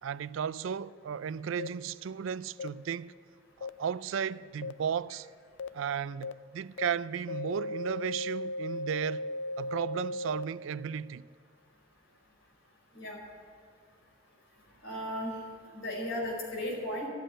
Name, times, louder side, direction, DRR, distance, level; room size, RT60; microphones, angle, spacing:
voice 1, 0.0-3.1 3.6-5.3 5.7-9.3 9.6-11.2, right 7 dB, 75° right, 0.4 m, -34 dB
sound 1, 1.6-1.7 2.6-2.7 3.6-3.7 4.6-4.7 5.6-5.7 6.2-6.3 6.8-6.9 7.3-10.4, left 2 dB, 60° left, 0.4 m, -36 dB
voice 2, 14.8-15.4 15.7-17.1, left 1 dB, 85° left, 4.7 m, -35 dB
13.0 x 7.8 x 9.8 m
head